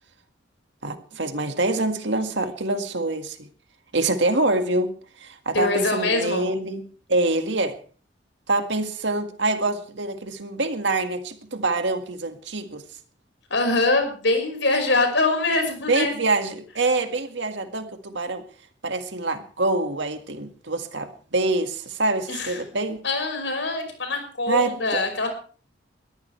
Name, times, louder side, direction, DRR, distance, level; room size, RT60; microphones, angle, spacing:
voice 1, 0.8-3.4 3.9-4.9 5.2-7.8 8.5-12.8 15.9-18.4 18.8-23.0 24.5-24.8, right 2 dB, 75° right, 7 dB, 1.9 m, -25 dB
voice 2, 5.5-6.5 13.5-16.2 22.3-22.6 23.0-25.3, left 2 dB, 75° left, 4 dB, 5.5 m, -23 dB
22.0 x 14.0 x 3.4 m, 0.41 s
head